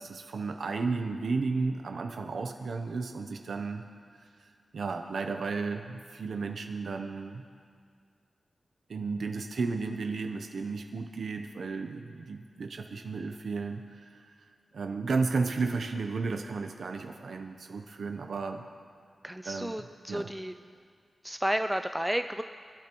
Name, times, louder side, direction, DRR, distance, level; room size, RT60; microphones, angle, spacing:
voice 1, 0.0-3.8 4.1-7.4 8.9-18.6 19.4-19.8 20.1-20.3, right 4 dB, 80° right, 5 dB, 0.6 m, -33 dB
voice 2, 19.2-20.5 21.2-22.4, right 1 dB, 5° right, 8 dB, 0.3 m, -32 dB
21.5 x 12.0 x 3.0 m, 2.1 s
wide cardioid pair, 100°, 0 cm